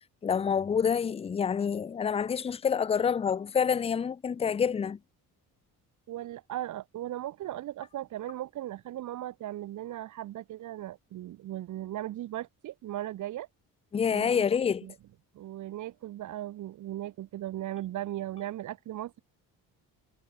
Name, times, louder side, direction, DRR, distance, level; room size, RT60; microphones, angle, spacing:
voice 1, 0.2-5.0 13.9-14.9, left 7 dB, 15° left, 0.5 m, -27 dB
voice 2, 6.1-13.5 14.1-14.4 14.8-14.9 15.3-19.2, right 13 dB, 55° right, 1.0 m, -37 dB
cardioid pair, 175°, 36 cm